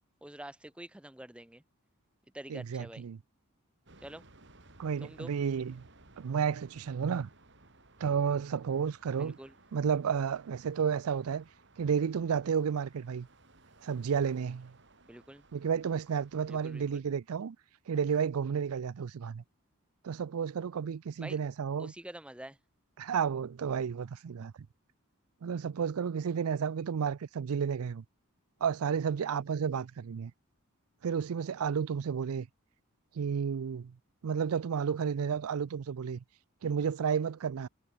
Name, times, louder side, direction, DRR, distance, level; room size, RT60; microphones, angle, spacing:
voice 1, 0.2-1.6 2.3-3.1 4.0-4.2 5.0-5.3 9.2-9.5 15.1-15.4 16.5-17.0 21.2-21.4 21.8-22.6, right 1 dB, 5° right, 0.5 m, -46 dB
voice 2, 2.5-3.2 4.8-5.8 6.2-7.3 8.0-9.4 9.7-11.5 11.8-13.3 13.8-14.7 15.5-17.6 17.9-19.4 20.0-21.9 23.0-24.5 25.4-28.0 28.6-30.3 31.0-32.5 33.1-33.9 34.2-36.2 36.6-37.7, right 7 dB, 85° right, 0.4 m, -32 dB
sound 1, 3.9-17.0, right 2 dB, 55° right, 3.9 m, -60 dB
head